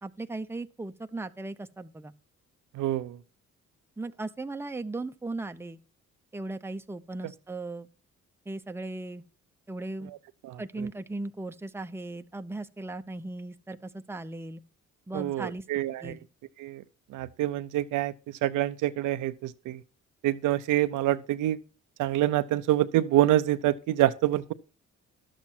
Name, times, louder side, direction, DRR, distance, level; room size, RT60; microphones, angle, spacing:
voice 1, 0.0-2.1 4.0-5.8 6.3-7.9 8.5-9.2 9.7-10.1 10.6-14.6 15.1-15.6 16.0-16.3, right 2 dB, 10° right, 0.7 m, -37 dB
voice 2, 2.7-3.2 10.4-10.6 15.1-16.2 16.6-16.8 17.1-18.1 18.4-19.8 20.2-21.6 22.0-24.5, right 14 dB, 90° right, 0.7 m, -26 dB
11.5 x 7.4 x 4.3 m
cardioid pair, 90°, 30 cm